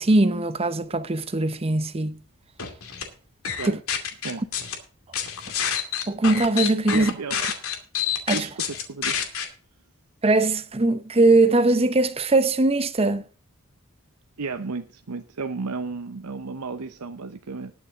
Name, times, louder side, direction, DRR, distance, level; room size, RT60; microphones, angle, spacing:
voice 1, 0.0-2.2 3.6-3.8 6.1-7.1 8.3-8.5 10.2-13.2, right 2 dB, 25° right, 0.8 m, -21 dB
sound 1, 2.6-3.0 3.4-4.8 5.1-9.4, left 8 dB, 70° left, 2.5 m, -27 dB
voice 2, 6.9-7.4 8.3-9.3 14.4-17.7, right 4 dB, 85° right, 0.8 m, -33 dB
20.0 x 6.9 x 3.7 m
head